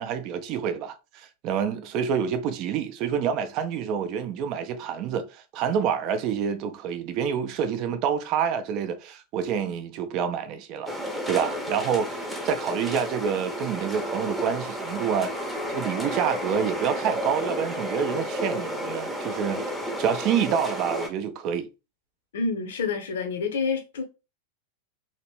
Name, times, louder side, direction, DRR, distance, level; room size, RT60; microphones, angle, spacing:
voice 1, 0.0-11.0 11.3-19.6 20.0-21.7, right 7 dB, 40° right, 0.5 m, -28 dB
sound 1, 10.9-21.1, equal, ahead, 0.8 m, -32 dB
voice 2, 22.3-24.0, left 4 dB, 60° left, 0.8 m, -28 dB
2.9 x 2.9 x 3.0 m
figure-of-eight pair, 90°, 0 cm